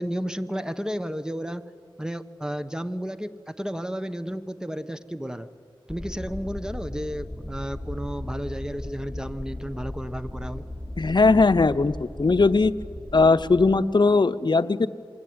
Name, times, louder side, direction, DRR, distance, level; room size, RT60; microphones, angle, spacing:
voice 1, 0.0-1.7 2.0-5.5 5.9-10.6, equal, 10° right, 11 dB, 1.4 m, -32 dB
sound 1, 5.9-13.8, left 1 dB, 10° left, 2.5 m, -37 dB
voice 2, 11.0-12.7 13.1-14.9, left 3 dB, 55° left, 10 dB, 0.9 m, -19 dB
27.0 x 22.5 x 9.7 m, 2.3 s
cardioid pair, 45°, 9 cm